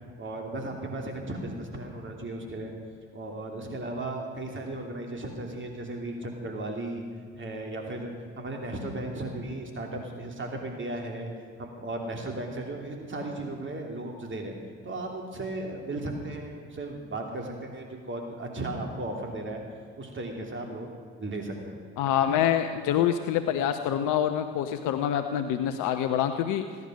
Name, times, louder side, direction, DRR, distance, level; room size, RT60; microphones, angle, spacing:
voice 1, 0.2-2.7 3.1-7.0 7.3-11.3 11.6-14.6 14.8-19.6 20.0-21.8, right 2 dB, 35° right, 2 dB, 3.0 m, -36 dB
voice 2, 22.0-26.6, left 10 dB, 70° left, 8 dB, 0.8 m, -26 dB
17.0 x 11.0 x 6.3 m, 2.2 s
hypercardioid pair, 60°, 32 cm